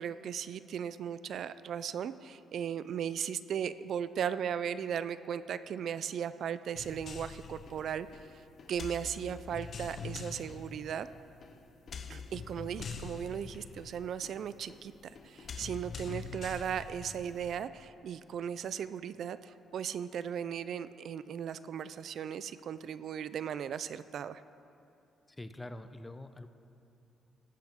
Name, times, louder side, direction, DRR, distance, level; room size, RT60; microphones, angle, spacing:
voice 1, 0.0-8.1 8.7-11.1 12.1-24.4, right 8 dB, 65° right, 14 dB, 0.3 m, -37 dB
sound 1, 6.7-17.6, left 5 dB, 50° left, 0.9 m, -45 dB
voice 2, 25.4-26.5, left 1 dB, 15° left, 10 dB, 0.6 m, -44 dB
14.0 x 10.5 x 3.6 m, 2.8 s
cardioid pair, 90°, 0 cm